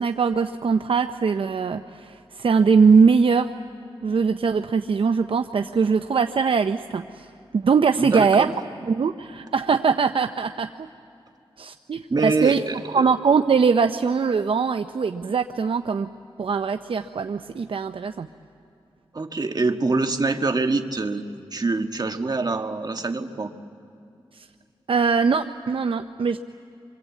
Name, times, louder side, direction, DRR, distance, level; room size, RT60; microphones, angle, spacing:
voice 1, 0.0-3.5 4.0-7.3 7.5-8.5 8.9-10.7 11.6-12.6 12.9-16.1 16.4-18.3 24.3-24.5 24.9-26.4, right 5 dB, 65° right, 8 dB, 0.6 m, -21 dB
voice 2, 8.0-8.5 12.1-13.0 19.1-21.2 21.5-23.5, right 3 dB, 45° right, 6 dB, 1.6 m, -25 dB
28.0 x 24.0 x 8.4 m, 2.6 s
cardioid pair, 60°, 10 cm